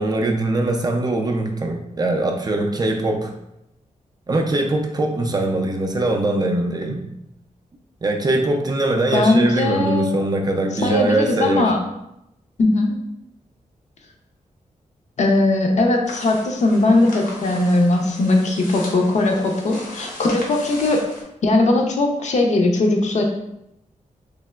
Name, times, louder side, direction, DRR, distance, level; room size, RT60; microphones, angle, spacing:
voice 1, 0.0-3.3 4.3-7.0 8.0-11.7, right 2 dB, 30° right, 2 dB, 0.4 m, -21 dB
voice 2, 9.1-10.2 10.8-11.8 12.6-13.0 15.2-21.0 21.4-23.2, left 2 dB, 60° left, 2 dB, 0.5 m, -19 dB
sound 1, 16.0-21.2, left 1 dB, 85° left, 0.9 m, -37 dB
3.2 x 2.8 x 2.2 m, 0.83 s
wide cardioid pair, 140°, 13 cm